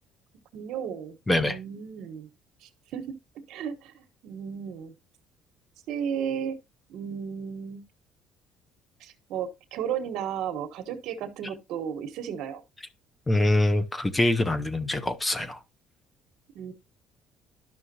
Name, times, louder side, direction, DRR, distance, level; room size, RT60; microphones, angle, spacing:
voice 1, 0.5-1.2 1.4-2.3 2.6-3.1 3.5-4.9 5.9-6.6 6.9-7.8 9.0-12.6 16.5-16.7, right 8 dB, 70° right, 1.2 m, -34 dB
voice 2, 1.3-1.6 13.3-15.6, left 1 dB, 15° left, 0.8 m, -24 dB
11.5 x 6.0 x 2.8 m
cardioid pair, 135°, 0 cm